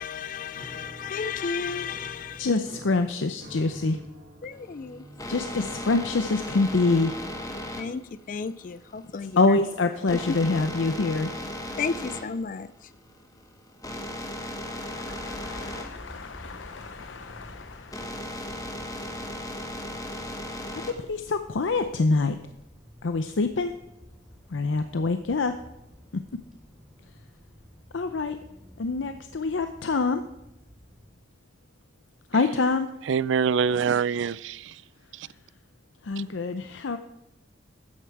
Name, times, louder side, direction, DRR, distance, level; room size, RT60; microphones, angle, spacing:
voice 1, 0.0-2.4 4.4-5.0 7.8-8.0 8.3-9.4 11.8-12.7, left 5 dB, 45° left, 0.3 m, -33 dB
Piano, 0.5-7.3, equal, 55° right, 2.0 m, -47 dB
voice 2, 2.4-4.0 5.3-7.1 9.4-11.3 14.3-18.1 20.9-22.4 23.0-23.7 24.5-25.5 27.9-28.4 28.8-30.2 32.3-32.9 36.0-37.0, left 3 dB, 90° left, 0.6 m, -26 dB
sound 1, 4.5-21.2, left 1 dB, 20° left, 1.1 m, -37 dB
sound 2, 15.1-31.1, equal, ahead, 2.9 m, -51 dB
voice 3, 33.1-34.7 35.2-35.3, right 6 dB, 80° right, 0.4 m, -25 dB
13.0 x 9.3 x 4.7 m
head